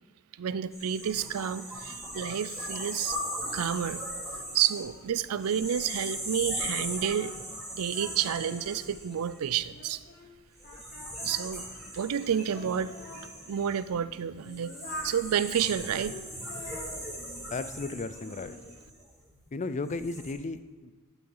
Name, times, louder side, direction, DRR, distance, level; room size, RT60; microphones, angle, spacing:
voice 1, 0.4-3.2 3.5-4.0 4.5-7.3 7.7-10.0 11.2-11.6 11.9-12.9 13.5-14.7 15.0-16.2, right 9 dB, 70° right, 15 dB, 0.4 m, -30 dB
sound 1, 0.7-9.9 10.6-19.3 19.8-20.3, equal, ahead, 2.4 m, -39 dB
Singing, 3.1-7.6 7.9-10.3 10.6-13.3 13.9-15.2 15.8-17.8 18.2-18.7, left 1 dB, 50° left, 1.7 m, -47 dB
voice 2, 17.5-18.6 19.5-20.9, left 3 dB, 35° left, 12 dB, 0.4 m, -35 dB
12.0 x 5.7 x 3.9 m, 1.4 s
head